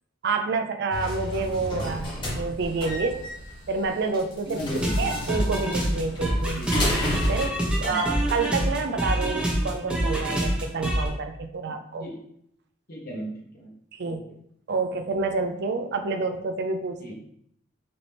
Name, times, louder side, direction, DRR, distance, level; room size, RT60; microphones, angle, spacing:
voice 1, 0.2-3.3 3.7-4.6 5.0-6.6 7.3-12.1 13.9-14.2 14.7-17.0, right 4 dB, 60° right, 7 dB, 0.5 m, -28 dB
sound 1, 0.9-7.5, left 1 dB, 25° left, 1.5 m, -31 dB
voice 2, 4.4-5.2 6.5-6.7 7.7-8.2 8.9-9.0 11.7-12.2 12.9-13.7 14.1-14.2 17.0-17.2, equal, 50° left, -3 dB, 1.2 m, -36 dB
sound 2, 4.8-11.1, equal, 5° right, 0.9 m, -26 dB
5.1 x 2.9 x 3.5 m, 0.70 s
head